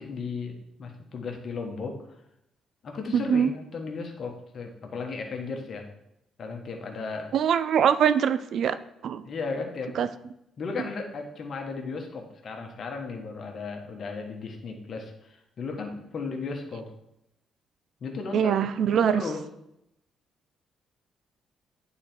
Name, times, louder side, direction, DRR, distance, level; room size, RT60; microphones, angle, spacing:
voice 1, 0.0-2.0 2.8-5.8 6.4-7.3 9.2-10.0 10.6-16.9 18.0-18.5 18.9-19.4, left 4 dB, 55° left, 3 dB, 1.3 m, -35 dB
voice 2, 3.1-3.5 7.3-8.8 9.0-9.2 10.0-10.1 18.3-19.2, right 8 dB, 65° right, 13 dB, 0.4 m, -23 dB
8.6 x 4.1 x 4.5 m, 0.82 s
cardioid pair, 90°, 0 cm